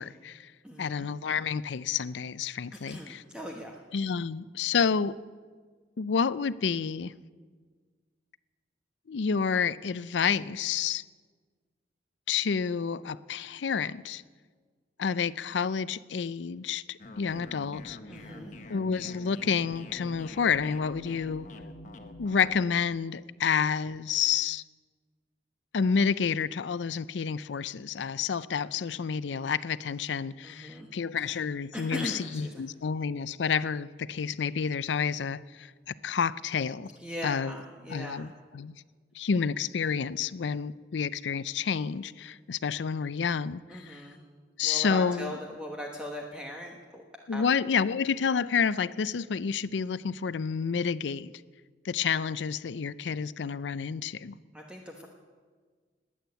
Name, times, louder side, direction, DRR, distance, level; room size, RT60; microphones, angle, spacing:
voice 1, 0.0-0.5 0.8-3.2 3.9-5.1 6.0-7.1 9.1-11.0 12.3-14.2 15.0-18.0 18.7-21.5 22.2-24.6 25.7-36.9 37.2-37.6 37.9-38.8 39.2-44.0 44.6-45.3 47.3-51.3 51.8-54.3, left 6 dB, 80° left, 0.5 m, -29 dB
voice 2, 0.6-1.1 2.7-3.8 18.1-18.6 30.4-30.9 31.7-32.7 37.0-38.3 43.7-44.2 44.6-47.0 47.3-47.4 54.5-55.1, equal, 5° right, 1.1 m, -39 dB
sound 1, 17.0-22.6, left 1 dB, 45° left, 1.2 m, -45 dB
20.5 x 8.7 x 8.1 m
head